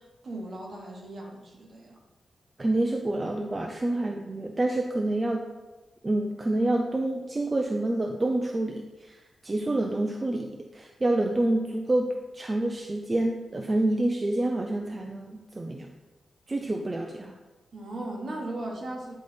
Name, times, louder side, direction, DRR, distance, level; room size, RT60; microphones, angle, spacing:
voice 1, 0.0-2.0 17.7-19.1, right 1 dB, 50° right, -1 dB, 1.3 m, -37 dB
voice 2, 2.6-5.5 6.0-15.9 16.5-17.4, right 1 dB, 25° right, 3 dB, 0.4 m, -28 dB
9.3 x 4.0 x 3.4 m, 1.2 s
wide cardioid pair, 135°, 0 cm